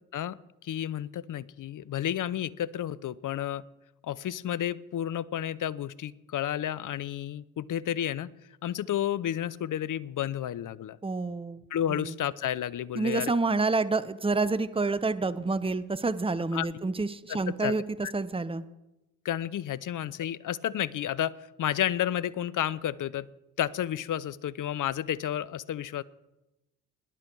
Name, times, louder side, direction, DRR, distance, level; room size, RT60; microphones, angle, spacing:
voice 1, 0.6-3.6 4.0-8.3 8.6-11.0 11.7-13.3 16.5-16.7 17.3-17.7 18.0-18.1 19.2-23.3 23.6-26.0, left 11 dB, 45° left, 20 dB, 0.6 m, -31 dB
voice 2, 11.0-11.6 11.9-12.1 13.0-17.8 18.1-18.6, right 3 dB, 10° right, 14 dB, 0.8 m, -28 dB
18.5 x 10.5 x 4.6 m, 0.97 s
hypercardioid pair, 45°, 45 cm